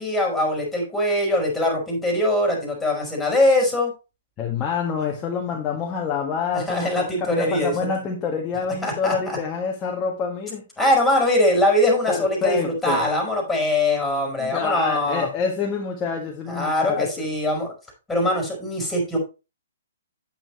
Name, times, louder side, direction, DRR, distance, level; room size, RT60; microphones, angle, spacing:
voice 1, 0.0-3.9 6.5-7.7 8.8-9.4 10.8-15.3 16.5-17.7 18.1-19.2, left 1 dB, 5° left, 0 dB, 4.6 m, -22 dB
voice 2, 4.4-10.6 12.1-13.0 14.4-17.1, left 6 dB, 20° left, 0 dB, 1.6 m, -27 dB
8.9 x 8.8 x 3.1 m, 0.29 s
hypercardioid pair, 140°, 0 cm